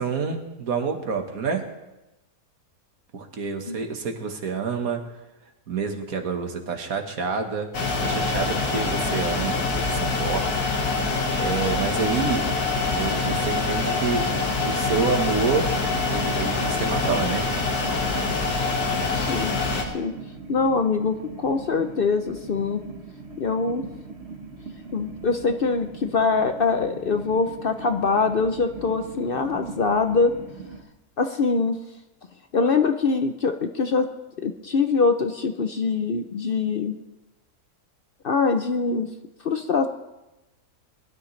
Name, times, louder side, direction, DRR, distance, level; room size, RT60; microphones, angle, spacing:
voice 1, 0.0-1.7 3.1-5.0 5.7-10.5 11.4-12.5 12.8-15.7 16.0-17.5, right 5 dB, 65° right, 5 dB, 1.8 m, -28 dB
sound 1, 7.7-19.8, left 3 dB, 80° left, 2.0 m, -25 dB
sound 2, 12.1-30.8, right 3 dB, 45° right, 1.6 m, -41 dB
voice 2, 19.1-19.5 19.8-20.1 20.5-22.8 23.4-23.8 24.9-30.4 31.2-31.8 32.5-34.1 34.4-37.0 38.2-39.1 39.4-39.9, left 4 dB, 55° left, 7 dB, 0.6 m, -23 dB
21.5 x 12.5 x 3.2 m, 1.0 s
omnidirectional pair, 1.6 m